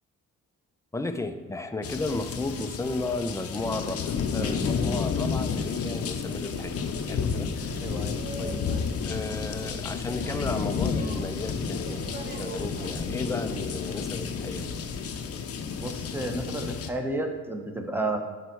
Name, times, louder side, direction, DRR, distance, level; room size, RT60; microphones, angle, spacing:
voice 1, 0.9-7.6 8.4-8.6 9.1-14.8, left 2 dB, 10° left, 8 dB, 0.6 m, -34 dB
sound 1, 1.8-16.9, left 6 dB, 50° left, 0.8 m, -31 dB
Boat Water vehicle, 6.4-15.2, right 2 dB, 40° right, 1.0 m, -42 dB
voice 2, 7.8-8.2 8.4-8.6 15.8-18.2, right 2 dB, 5° right, 3 dB, 1.1 m, -32 dB
11.5 x 4.1 x 4.6 m, 1.3 s
cardioid pair, 90°, 30 cm